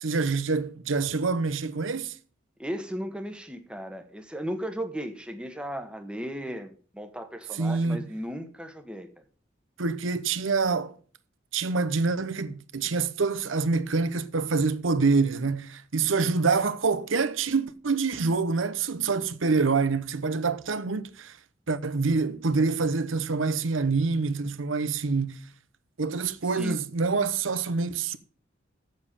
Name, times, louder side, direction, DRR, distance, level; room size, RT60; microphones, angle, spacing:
voice 1, 0.0-2.1 7.6-8.0 9.8-10.9 11.5-21.4 21.7-25.4 26.0-28.2, right 4 dB, 90° right, 0.8 m, -26 dB
voice 2, 2.6-9.1 16.2-16.4 26.4-26.8, equal, 5° right, 1.1 m, -36 dB
7.5 x 7.4 x 6.8 m
head